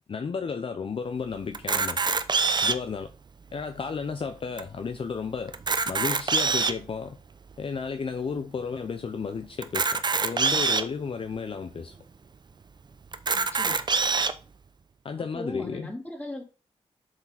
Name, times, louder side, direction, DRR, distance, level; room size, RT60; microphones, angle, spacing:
voice 1, 0.1-2.1 2.6-3.1 3.5-5.6 5.8-7.2 7.6-12.0 15.0-15.9, left 5 dB, 50° left, 0.7 m, -33 dB
Camera, 1.5-2.9 3.6-3.7 3.9-4.0 4.6-4.7 5.5-6.9 7.5-7.6 9.6-10.8 11.6-11.7 11.9-12.0 13.1-14.3, right 4 dB, 40° right, 0.7 m, -25 dB
voice 2, 13.3-13.8 15.3-16.4, left 1 dB, 15° left, 3.4 m, -38 dB
7.7 x 4.9 x 5.6 m
wide cardioid pair, 90°, 11 cm